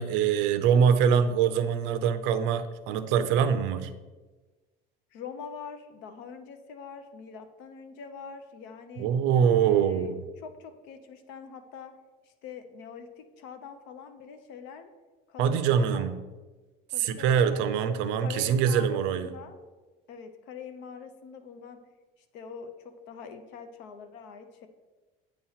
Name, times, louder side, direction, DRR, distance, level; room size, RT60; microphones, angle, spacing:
voice 1, 0.0-3.9 9.0-10.2 15.4-16.2 17.0-19.3, right 7 dB, 75° right, 11 dB, 0.6 m, -24 dB
voice 2, 5.1-9.1 9.6-10.1 10.4-11.9 12.2-14.9 15.3-16.1 16.9-17.7 18.2-19.6 20.1-21.8 22.3-24.7, left 6 dB, 70° left, 8 dB, 0.7 m, -44 dB
8.5 x 3.0 x 5.6 m, 1.2 s
cardioid pair, 180°, 20 cm